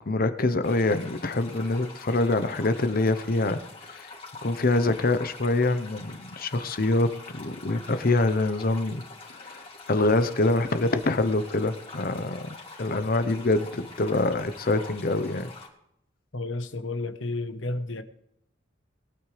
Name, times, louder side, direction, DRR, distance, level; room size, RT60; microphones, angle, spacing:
voice 1, 0.1-3.6 3.9-4.1 4.4-9.0 9.3-12.5 12.8-15.5, left 2 dB, 50° left, 0.9 m, -25 dB
sound 1, 0.6-15.7, left 3 dB, 30° left, 3.2 m, -45 dB
voice 2, 16.3-18.0, left 2 dB, 80° left, 1.2 m, -31 dB
22.5 x 9.2 x 3.4 m
head